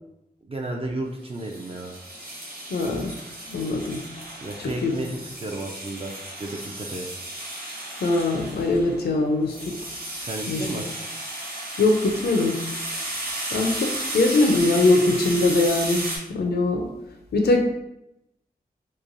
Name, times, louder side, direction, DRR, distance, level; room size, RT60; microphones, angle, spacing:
voice 1, 0.5-1.9 4.4-6.1 6.4-7.1 10.2-10.9, right 2 dB, 35° right, 0 dB, 0.4 m, -32 dB
sound 1, 1.3-16.2, right 1 dB, 70° right, 0.8 m, -34 dB
voice 2, 2.7-3.2 3.5-4.0 4.8-4.9 8.0-9.8 10.5-10.8 11.8-12.6 13.5-16.9 17.3-17.6, left 2 dB, 80° left, 3 dB, 0.4 m, -22 dB
3.0 x 2.2 x 2.5 m, 0.85 s
cardioid pair, 50°, 16 cm